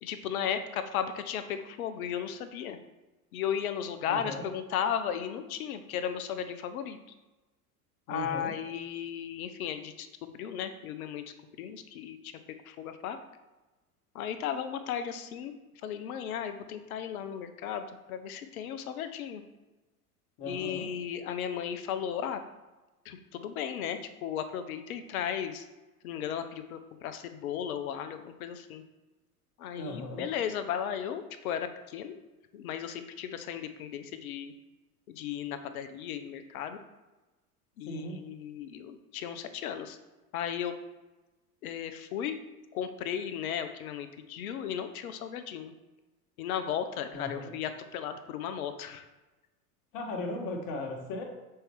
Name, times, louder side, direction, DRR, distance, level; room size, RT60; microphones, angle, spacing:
voice 1, 0.0-2.8 3.3-7.0 8.1-11.2 11.6-12.3 12.6-13.2 14.1-15.5 15.8-19.4 20.4-22.4 23.0-25.6 26.0-28.8 29.6-32.1 32.5-34.5 35.1-36.8 37.8-40.0 40.3-40.7 41.6-42.4 42.7-45.7 46.4-49.1, left 9 dB, 65° left, 9 dB, 0.8 m, -35 dB
voice 2, 4.0-4.4 8.1-8.5 20.4-20.9 29.8-30.2 37.9-38.2 47.1-47.5 49.9-51.2, left 1 dB, 45° left, 2 dB, 1.5 m, -37 dB
6.8 x 4.4 x 3.6 m, 1.1 s
figure-of-eight pair, 80°, 47 cm